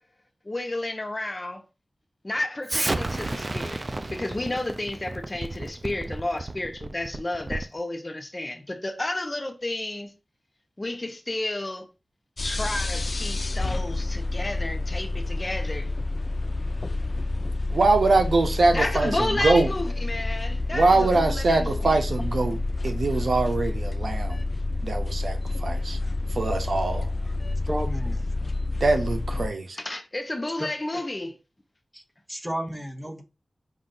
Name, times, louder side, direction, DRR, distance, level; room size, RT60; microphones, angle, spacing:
voice 1, 0.4-1.6 2.2-10.1 10.8-11.9 12.4-15.9 18.7-22.0 29.8-31.3, left 2 dB, 35° left, 0.8 m, -31 dB
Explosion, 2.7-7.8, right 2 dB, 45° right, 0.5 m, -32 dB
sound 1, 12.4-29.5, left 2 dB, 55° left, 0.3 m, -29 dB
voice 2, 17.7-19.7 20.7-24.4 24.8-26.0 26.3-27.1 28.8-29.8, right 3 dB, 80° right, 0.8 m, -23 dB
voice 3, 27.6-28.2 30.6-30.7 31.9-32.0 32.3-33.2, equal, 10° right, 1.0 m, -32 dB
5.2 x 2.6 x 3.8 m
cardioid pair, 50°, 0 cm